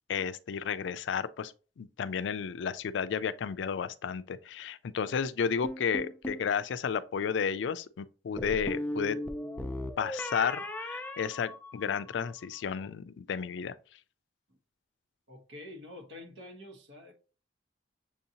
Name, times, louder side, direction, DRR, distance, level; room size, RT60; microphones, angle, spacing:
voice 1, 0.1-9.2 10.0-13.7, left 6 dB, 80° left, 0.3 m, -32 dB
sound 1, 5.6-6.5 8.4-12.1, left 1 dB, 10° left, 0.4 m, -37 dB
voice 2, 15.3-17.1, left 1 dB, 75° right, 1.1 m, -47 dB
6.9 x 2.7 x 2.8 m
head